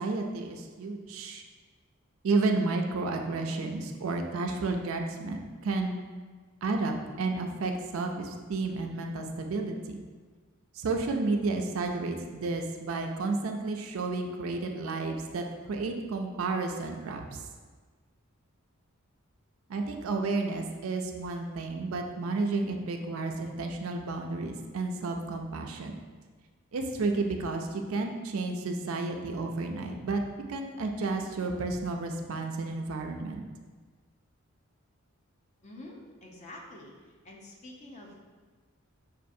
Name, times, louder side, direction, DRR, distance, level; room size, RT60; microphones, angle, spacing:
voice 1, 0.0-1.4 2.2-6.0 6.6-9.7 10.7-17.4 19.7-26.0 26.7-30.2 30.5-33.4, right 3 dB, 75° right, 3 dB, 0.4 m, -31 dB
voice 2, 35.6-38.2, left 1 dB, 35° left, -1 dB, 0.6 m, -47 dB
6.2 x 2.4 x 2.6 m, 1.4 s
head